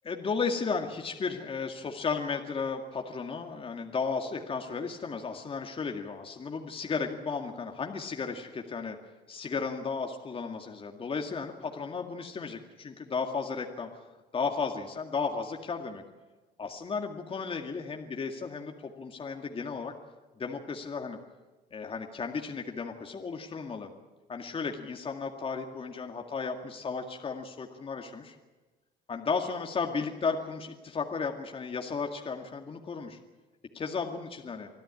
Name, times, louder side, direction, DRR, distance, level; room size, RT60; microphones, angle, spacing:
voice 1, 0.0-9.0 9.3-14.1 14.3-16.0 16.6-19.9 20.4-21.2 21.7-23.9 24.3-28.4 29.1-33.2 33.7-34.7, left 5 dB, 35° left, 3 dB, 2.1 m, -34 dB
25.5 x 14.5 x 9.8 m, 1.2 s
cardioid pair, 110°, 17 cm